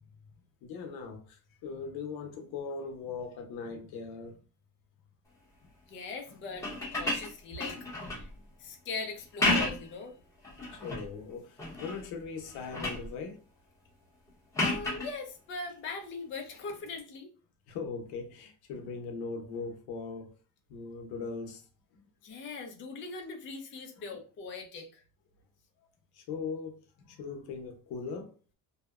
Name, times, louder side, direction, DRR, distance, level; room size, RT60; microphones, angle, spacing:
voice 1, 0.6-4.4 8.4-8.5 10.7-13.4 17.7-20.3 20.7-21.7 21.9-22.1 24.0-24.1 26.1-28.3, left 5 dB, 85° left, 0.7 m, -40 dB
voice 2, 5.9-7.8 8.1-8.3 8.6-10.1 14.6-17.3 22.2-25.0, left 3 dB, 35° left, 0.4 m, -41 dB
sound 1, 6.5-8.3 9.2-10.0 10.4-11.1 11.6-12.1 12.4-13.1 14.5-15.1 16.9-17.0, left 2 dB, 10° left, 0.8 m, -32 dB
2.7 x 2.0 x 2.3 m
cardioid pair, 160°, 36 cm